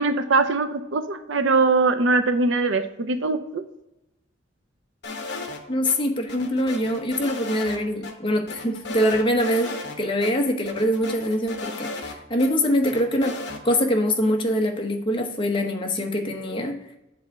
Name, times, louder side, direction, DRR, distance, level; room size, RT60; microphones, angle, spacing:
voice 1, 0.0-3.6, right 3 dB, 70° right, 9 dB, 0.6 m, -22 dB
sound 1, 5.0-6.0 6.3-8.1 8.5-10.0 10.2-10.3 10.7-12.5 12.8-13.6, left 3 dB, 60° left, 1.1 m, -35 dB
voice 2, 5.7-13.4 13.6-16.8, equal, 25° left, 2 dB, 0.9 m, -24 dB
8.0 x 3.4 x 5.3 m, 0.90 s
head